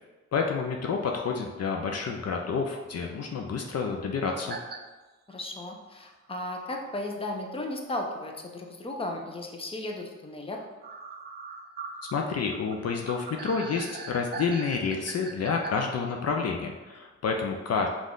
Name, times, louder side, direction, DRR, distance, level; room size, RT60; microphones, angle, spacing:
voice 1, 0.3-4.6 12.1-17.9, left 5 dB, 55° left, 2 dB, 0.5 m, -29 dB
sound 1, 4.5-4.8 5.3-5.4 6.8-6.9 7.5-7.6 7.9-8.0 10.8-15.7, right 4 dB, 35° right, 0.5 m, -40 dB
voice 2, 5.3-10.7, left 1 dB, 20° left, 1 dB, 0.7 m, -35 dB
5.3 x 2.5 x 3.8 m, 1.2 s
cardioid pair, 90°, 30 cm